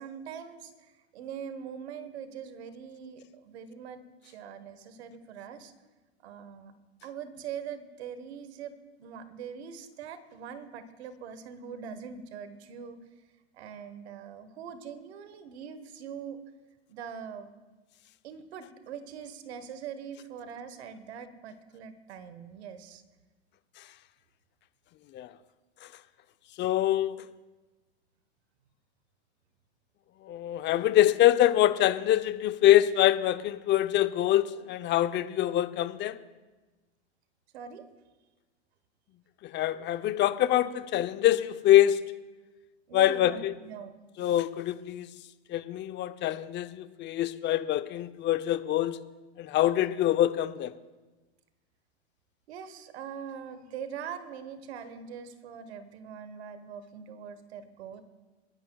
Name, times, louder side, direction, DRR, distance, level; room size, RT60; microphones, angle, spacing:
voice 1, 0.0-5.7 6.2-6.7 7.0-13.0 13.5-16.4 16.9-17.5 18.2-23.0 37.5-37.9 42.9-44.0 52.5-58.0, right 7 dB, 75° right, 11 dB, 1.3 m, -42 dB
voice 2, 26.6-27.3 30.2-36.2 39.4-42.1 42.9-43.5 44.2-45.1 45.5-49.0 49.4-50.8, left 13 dB, 35° left, 12 dB, 0.7 m, -25 dB
27.0 x 11.0 x 2.3 m, 1.2 s
hypercardioid pair, 105°, 32 cm